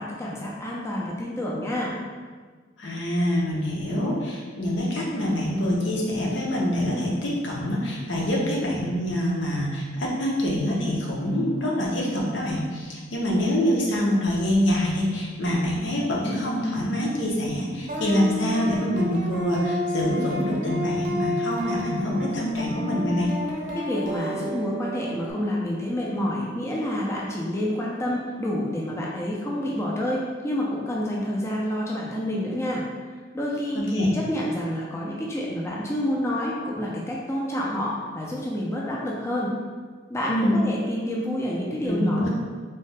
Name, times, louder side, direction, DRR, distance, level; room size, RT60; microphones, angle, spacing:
voice 1, 0.0-2.0 23.7-32.9 33.3-39.5 40.1-42.3, left 1 dB, 15° left, -4 dB, 0.4 m, -28 dB
voice 2, 2.8-23.3 33.7-34.1 40.3-40.6 41.8-42.3, equal, 70° left, -3 dB, 0.8 m, -25 dB
sound 1, 17.9-25.3, left 1 dB, 40° right, 0.6 m, -31 dB
3.2 x 2.7 x 3.2 m, 1.5 s
head